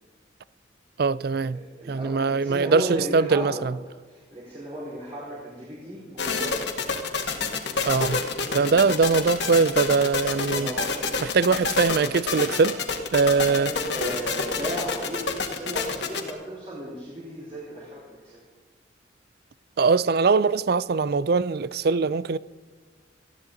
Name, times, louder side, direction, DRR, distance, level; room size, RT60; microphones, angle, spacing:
voice 1, 1.0-1.6 1.9-3.7 7.9-8.2 8.5-10.7 11.3-12.8 13.1-13.7 19.8-22.4, right 4 dB, 55° right, 0.4 m, -22 dB
voice 2, 1.5-3.6 4.1-6.6 8.5-8.9 10.5-11.2 13.3-18.4, right 1 dB, 30° right, 4.5 m, -35 dB
sound 1, 6.2-16.3, left 4 dB, 65° left, 1.9 m, -27 dB
19.0 x 15.0 x 3.9 m
head